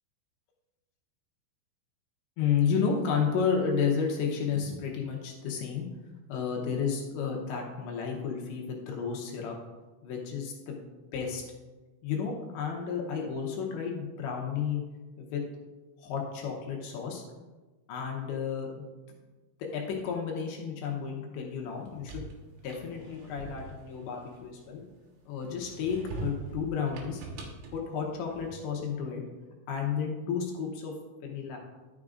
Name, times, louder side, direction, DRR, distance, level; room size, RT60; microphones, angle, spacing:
voice 1, 2.4-5.9 6.3-9.6 10.0-10.8 11.1-11.4 12.0-14.8 15.2-15.4 16.0-17.2 17.9-18.8 19.6-22.1 22.6-24.8 25.3-27.2 27.7-29.2 29.7-30.9 31.2-31.6, left 6 dB, 75° left, 0 dB, 2.9 m, -32 dB
sound 1, 21.7-24.9 25.4-28.8, right 3 dB, 75° right, 3.3 m, -43 dB
12.0 x 6.5 x 2.4 m, 1.2 s
omnidirectional pair, 5.7 m